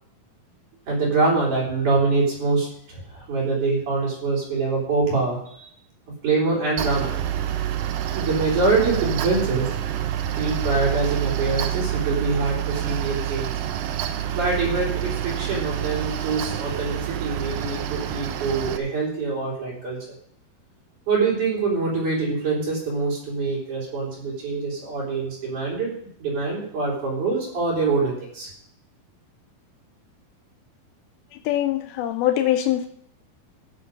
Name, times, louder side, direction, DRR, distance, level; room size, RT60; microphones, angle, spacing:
voice 1, 0.9-5.7 6.2-7.2 8.1-9.7 10.3-13.5 14.3-20.0 21.1-25.9 26.2-28.5, right 3 dB, 55° right, -4 dB, 5.3 m, -24 dB
Mechanical fan, 6.8-18.8, right 11 dB, 80° right, 2.5 m, -27 dB
voice 2, 31.3-32.9, left 12 dB, 90° left, 7 dB, 2.6 m, -23 dB
15.5 x 7.3 x 5.2 m, 0.67 s
omnidirectional pair, 4.2 m